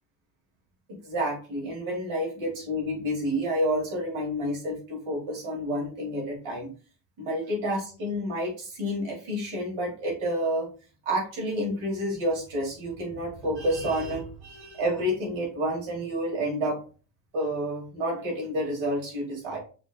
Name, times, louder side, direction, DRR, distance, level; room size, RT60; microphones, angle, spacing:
voice 1, 0.9-6.7 7.2-10.7 11.0-16.8 17.3-19.6, equal, 80° right, -3 dB, 2.6 m, -29 dB
6.9 x 3.0 x 2.3 m, 0.37 s
cardioid pair, 65°, 47 cm